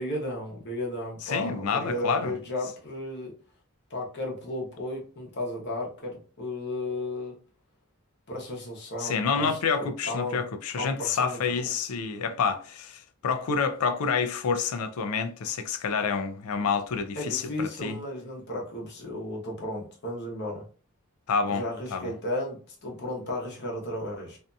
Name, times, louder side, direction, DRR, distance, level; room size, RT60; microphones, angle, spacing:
voice 1, 0.0-3.3 3.9-7.3 8.3-9.6 10.1-10.4 10.7-11.7 17.1-20.6 21.5-24.4, left 1 dB, 50° left, 0.9 m, -34 dB
voice 2, 1.2-2.3 9.0-18.0 21.3-21.6 21.9-22.1, left 5 dB, 80° left, 0.4 m, -28 dB
2.6 x 2.6 x 2.2 m
head